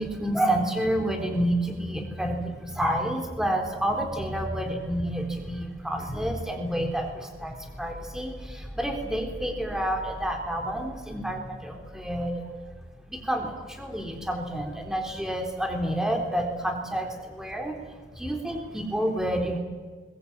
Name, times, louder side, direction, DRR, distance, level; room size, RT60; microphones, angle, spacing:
voice 1, 0.0-12.5 13.1-17.8 18.2-19.6, right 1 dB, 5° right, 3 dB, 3.8 m, -29 dB
22.0 x 21.5 x 8.8 m, 1.5 s
head